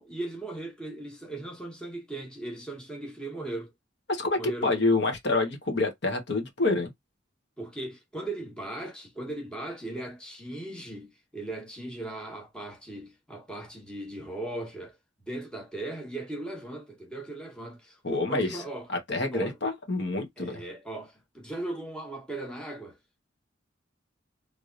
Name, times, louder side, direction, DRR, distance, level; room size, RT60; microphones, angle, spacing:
voice 1, 0.0-3.7 4.4-4.8 7.6-15.0 15.3-18.9 19.3-19.6 20.4-23.0, right 2 dB, 5° left, 1.3 m, -38 dB
voice 2, 4.1-6.9 18.0-18.6 18.9-20.6, left 2 dB, 65° left, 1.3 m, -27 dB
3.6 x 3.3 x 2.6 m
head